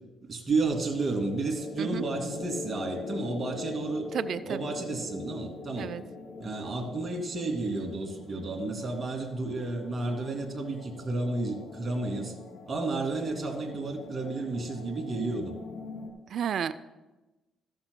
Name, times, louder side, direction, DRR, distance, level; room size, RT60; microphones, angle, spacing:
voice 1, 0.3-4.1 4.5-5.9 6.4-12.4 12.7-15.5, right 3 dB, 35° right, 2 dB, 2.3 m, -31 dB
sound 1, 0.7-16.1, left 3 dB, 75° left, 1.4 m, -43 dB
voice 2, 4.1-4.7 5.8-6.0 16.3-16.7, right 8 dB, 65° right, 12 dB, 0.3 m, -32 dB
14.0 x 11.5 x 2.2 m, 1.1 s
cardioid pair, 90°, 0 cm